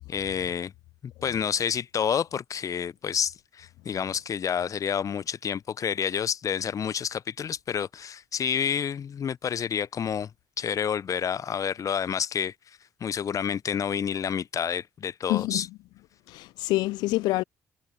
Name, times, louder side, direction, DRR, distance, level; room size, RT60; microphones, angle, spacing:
voice 1, 0.1-0.7 1.0-10.3 10.6-12.5 13.0-15.7, left 8 dB, 45° left, 0.8 m, -29 dB
voice 2, 15.3-15.7 16.3-17.4, left 19 dB, 65° left, 0.5 m, -26 dB
figure-of-eight pair, 40°, 8 cm